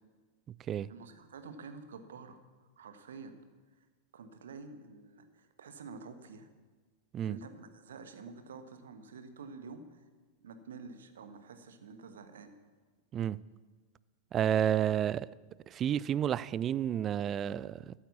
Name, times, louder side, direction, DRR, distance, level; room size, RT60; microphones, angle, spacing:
voice 1, 0.9-2.4 2.8-3.4 3.8-3.9 4.1-6.5 7.2-10.0 10.4-12.5, right 4 dB, 65° right, 1.2 m, -48 dB
voice 2, 14.3-15.3 15.7-17.9, right 10 dB, 30° right, 0.3 m, -30 dB
14.0 x 8.8 x 7.1 m
figure-of-eight pair, 90°, 0 cm